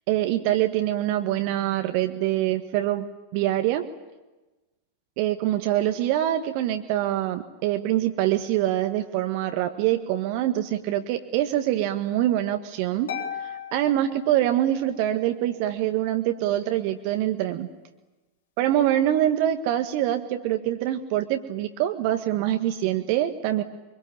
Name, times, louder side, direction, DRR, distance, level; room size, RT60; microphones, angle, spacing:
voice 1, 0.1-3.9 5.2-13.1 13.7-17.7 18.6-23.6, right 13 dB, 45° right, 6 dB, 1.6 m, -24 dB
Harp, 13.1-15.0, left 8 dB, 65° left, 3.8 m, -36 dB
24.5 x 24.5 x 8.9 m, 1.1 s
figure-of-eight pair, 90°, 0 cm